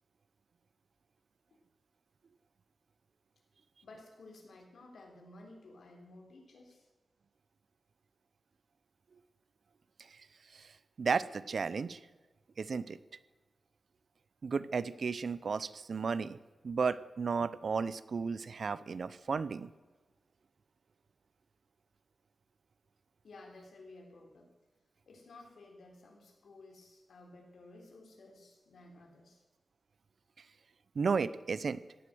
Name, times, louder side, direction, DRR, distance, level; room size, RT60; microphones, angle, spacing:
voice 1, 3.8-6.9 23.2-24.5 25.1-29.4, left 2 dB, 85° left, 2 dB, 3.6 m, -54 dB
voice 2, 10.5-12.0 12.6-13.0 14.4-16.4 16.6-19.7 30.9-31.8, right 5 dB, 60° right, 16 dB, 0.7 m, -34 dB
16.5 x 9.9 x 7.9 m, 1.3 s
wide cardioid pair, 145°, 0 cm